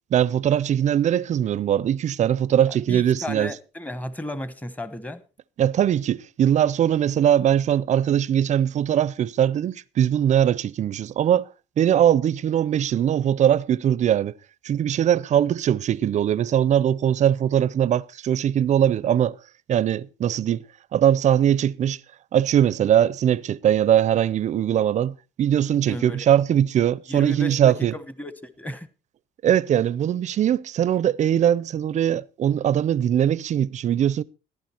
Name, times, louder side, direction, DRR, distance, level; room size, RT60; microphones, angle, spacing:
voice 1, 0.1-3.5 5.6-11.5 11.8-14.3 14.6-19.4 19.7-20.6 20.9-22.0 22.3-27.9 29.4-34.2, right 10 dB, 45° right, 0.5 m, -21 dB
voice 2, 2.6-5.2 25.9-26.3 27.1-28.9, left 1 dB, 10° left, 1.1 m, -34 dB
14.5 x 11.0 x 4.3 m
cardioid pair, 110°, 17 cm